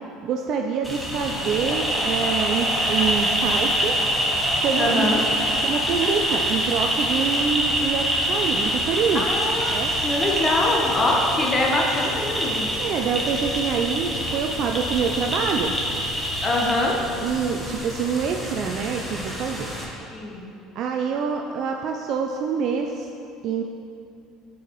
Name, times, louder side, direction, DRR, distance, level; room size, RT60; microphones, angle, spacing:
voice 1, 0.2-4.0 4.6-9.2 9.7-9.9 12.8-15.7 17.2-19.7 20.8-23.1 23.4-23.6, right 6 dB, 60° right, 3 dB, 0.4 m, -26 dB
sound 1, 0.8-19.8, equal, ahead, 1.5 m, -25 dB
voice 2, 4.8-5.2 9.1-9.7 10.0-12.7 16.4-17.0 20.1-20.5, left 2 dB, 30° left, -1 dB, 0.9 m, -23 dB
8.7 x 4.7 x 3.0 m, 2.6 s
hypercardioid pair, 75°, 0 cm